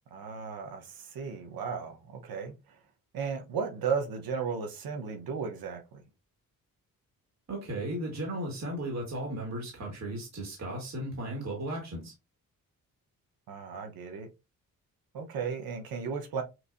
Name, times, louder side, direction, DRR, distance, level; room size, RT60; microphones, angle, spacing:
voice 1, 0.1-2.8 3.1-6.0 13.5-14.3 15.1-16.4, right 6 dB, 90° right, 1.0 m, -35 dB
voice 2, 7.5-12.1, right 1 dB, 50° right, 1.8 m, -35 dB
6.1 x 2.7 x 2.6 m
cardioid pair, 95°, 35 cm